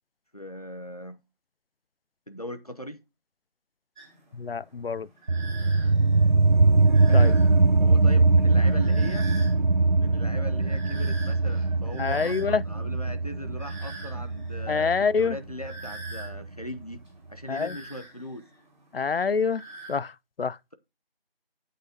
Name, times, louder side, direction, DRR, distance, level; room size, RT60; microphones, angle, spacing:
voice 1, 0.3-1.2 2.3-3.0 7.1-7.4 7.8-9.3 10.0-17.0 17.3-18.5, equal, 40° left, 0.7 m, -39 dB
sound 1, 4.0-20.0, right 3 dB, ahead, 2.6 m, -47 dB
voice 2, 4.3-5.1 7.1-7.3 12.0-12.6 14.7-15.4 17.5-17.8 18.9-19.6 19.9-20.1 20.4-20.6, left 5 dB, 70° left, 0.5 m, -26 dB
sound 2, 5.3-16.4, right 3 dB, 55° right, 0.5 m, -22 dB
9.6 x 8.3 x 2.8 m
figure-of-eight pair, 175°, 30 cm